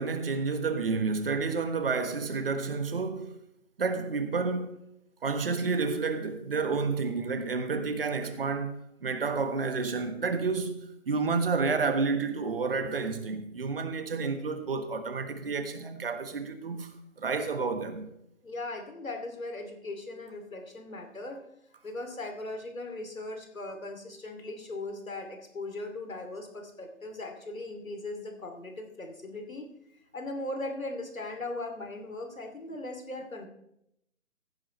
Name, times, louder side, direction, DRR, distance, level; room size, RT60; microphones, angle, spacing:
voice 1, 0.0-3.4 3.8-4.8 5.2-18.1, right 4 dB, 45° right, 1.4 m, -30 dB
voice 2, 18.4-21.4 21.8-29.7 30.1-33.5, left 2 dB, 80° left, 2.8 m, -38 dB
15.0 x 10.5 x 3.2 m
figure-of-eight pair, 155°, 40 cm